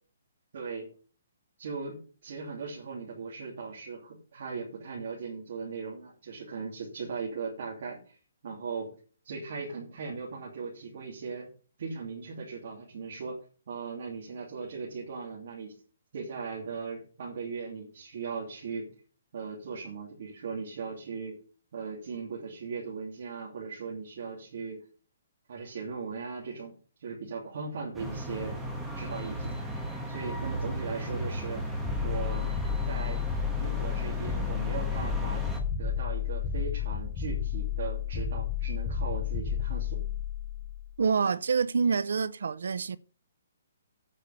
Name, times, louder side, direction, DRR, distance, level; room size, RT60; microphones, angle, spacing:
voice 1, 0.5-0.9 1.6-8.2 8.4-8.9 9.2-11.5 11.8-13.4 13.7-15.7 16.1-18.9 19.3-21.4 21.7-24.8 25.5-26.7 27.0-28.6 28.9-29.5 30.1-31.6 32.0-32.5 32.9-33.2 33.6-35.4 35.8-40.0, right 5 dB, 45° right, 2.9 m, -38 dB
sound 1, 27.9-35.6, right 1 dB, 5° right, 1.3 m, -36 dB
sound 2, 31.8-40.9, left 8 dB, 10° left, 0.4 m, -32 dB
voice 2, 41.0-43.0, right 5 dB, 70° right, 0.6 m, -27 dB
8.4 x 6.8 x 6.9 m
hypercardioid pair, 180°, 0 cm